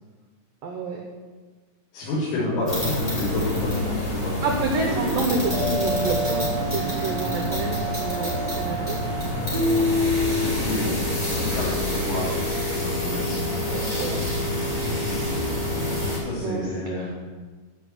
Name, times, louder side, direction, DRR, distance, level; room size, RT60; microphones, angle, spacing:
voice 1, 0.6-1.0 2.4-2.6 4.4-9.0 10.7-10.9 13.7-14.3 16.4-17.1, right 4 dB, 90° right, 1 dB, 1.9 m, -29 dB
voice 2, 1.9-4.4 10.3-13.4 16.2-17.1, left 1 dB, 85° left, -12 dB, 6.4 m, -29 dB
sound 1, 2.6-16.2, left 1 dB, 10° left, 1.9 m, -27 dB
sound 2, 3.8-14.2, left 1 dB, 30° right, 2.5 m, -30 dB
12.5 x 5.6 x 7.9 m, 1.4 s
omnidirectional pair, 5.6 m